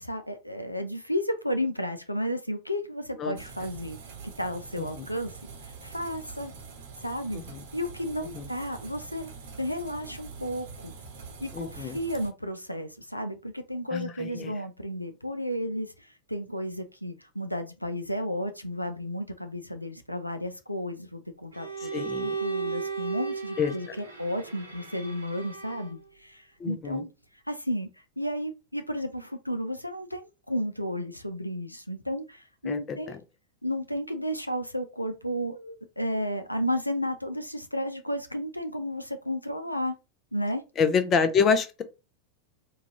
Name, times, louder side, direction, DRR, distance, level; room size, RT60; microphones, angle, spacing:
voice 1, 0.0-5.4 5.6-6.5 7.0-7.4 7.7-9.3 9.6-10.9 11.4-27.1 27.5-27.9 28.2-33.2 33.6-39.9 40.3-40.6, equal, 90° left, 0.4 m, -33 dB
sound 1, 3.3-12.3, right 5 dB, 55° right, 0.9 m, -45 dB
voice 2, 11.5-12.0 13.9-14.5 21.8-22.4 23.6-23.7 26.6-27.0 32.7-33.0 40.8-41.8, left 6 dB, 30° left, 0.6 m, -27 dB
Bowed string instrument, 21.5-26.0, right 5 dB, 80° right, 1.0 m, -35 dB
3.8 x 2.3 x 2.9 m
figure-of-eight pair, 90°, 0 cm